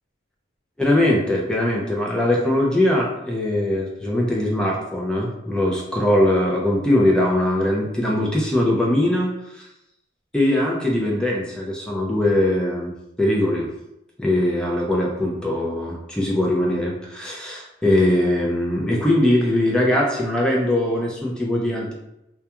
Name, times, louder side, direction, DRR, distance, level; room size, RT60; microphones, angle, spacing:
voice 1, 0.8-9.6 10.3-13.7 14.2-21.9, left 1 dB, 5° left, -3 dB, 0.4 m, -21 dB
2.2 x 2.2 x 2.8 m, 0.87 s
head